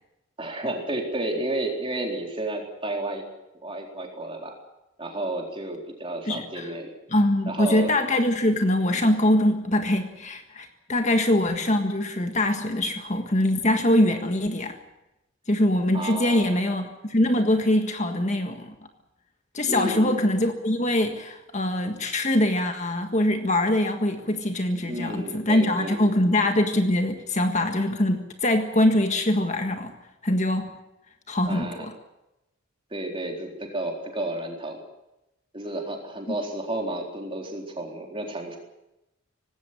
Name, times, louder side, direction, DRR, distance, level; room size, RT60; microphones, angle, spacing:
voice 1, 0.4-3.2 3.6-4.6 5.0-6.9 7.5-8.0 11.0-11.1 15.9-16.6 19.6-20.2 24.8-26.1 31.5-31.9 32.9-34.8 35.5-38.6, right 1 dB, 25° right, 1 dB, 4.0 m, -32 dB
voice 2, 6.3-6.7 7.1-14.7 15.5-18.7 19.5-29.9 30.2-30.7 31.3-31.9, left 1 dB, 35° left, 5 dB, 1.6 m, -23 dB
19.0 x 16.5 x 9.9 m, 0.92 s
head